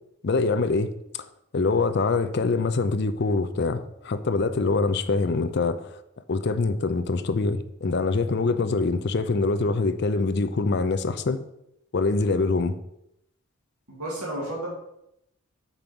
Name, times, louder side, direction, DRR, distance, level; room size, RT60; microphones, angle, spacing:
voice 1, 0.2-0.9 1.5-5.9 6.3-11.4 11.9-12.7, left 3 dB, 50° left, 10 dB, 0.5 m, -24 dB
voice 2, 13.9-14.7, right 1 dB, 85° right, -3 dB, 2.3 m, -32 dB
5.3 x 5.1 x 6.0 m, 0.82 s
head